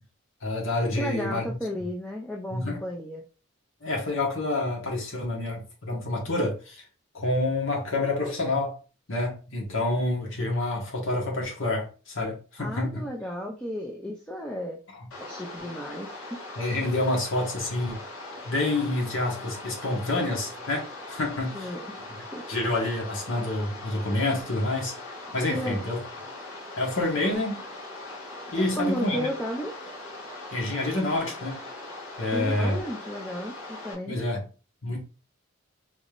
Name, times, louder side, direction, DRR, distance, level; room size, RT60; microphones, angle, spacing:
voice 1, 0.4-1.6 2.5-2.8 3.8-6.8 7.1-8.7 9.1-13.0 15.0-15.1 16.6-18.0 18.4-21.8 22.5-24.9 25.3-26.0 26.8-27.6 28.5-29.3 30.5-31.6 32.2-32.8 34.1-34.4 34.8-35.0, left 2 dB, 75° left, 1.5 m, -28 dB
voice 2, 1.0-3.2 12.6-14.8 15.2-16.5 21.5-21.8 22.3-22.4 25.5-25.8 28.5-29.7 32.3-34.2, equal, 5° left, 0.5 m, -33 dB
sound 1, 15.1-33.9, left 2 dB, 90° left, 1.4 m, -40 dB
4.0 x 3.4 x 2.5 m
head